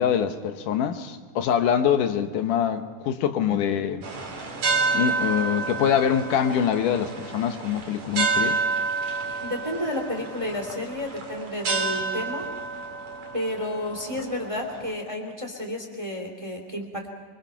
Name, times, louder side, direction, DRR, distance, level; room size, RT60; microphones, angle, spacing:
voice 1, 0.0-4.1 4.9-8.6, left 8 dB, 80° left, 7 dB, 2.6 m, -24 dB
sound 1, 4.0-14.9, right 4 dB, 60° right, 3.8 m, -29 dB
voice 2, 9.4-12.5 13.3-17.1, left 1 dB, 10° right, 2 dB, 2.5 m, -31 dB
25.5 x 24.5 x 5.7 m, 1.5 s
omnidirectional pair, 3.7 m